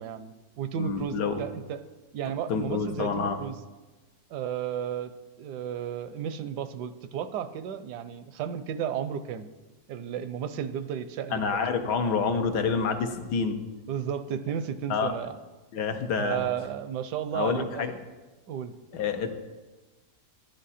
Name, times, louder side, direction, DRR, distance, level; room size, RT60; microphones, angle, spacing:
voice 1, 0.0-1.8 2.1-3.6 4.3-9.5 9.9-11.5 13.9-15.4 16.2-18.0 18.5-18.7, right 9 dB, 80° right, 11 dB, 1.2 m, -33 dB
voice 2, 0.8-1.4 2.5-3.4 11.3-13.6 14.9-15.1 15.7-16.5 17.3-17.9 18.9-19.4, left 5 dB, 80° left, 6 dB, 1.5 m, -28 dB
11.5 x 10.0 x 4.2 m, 1.2 s
omnidirectional pair, 1.8 m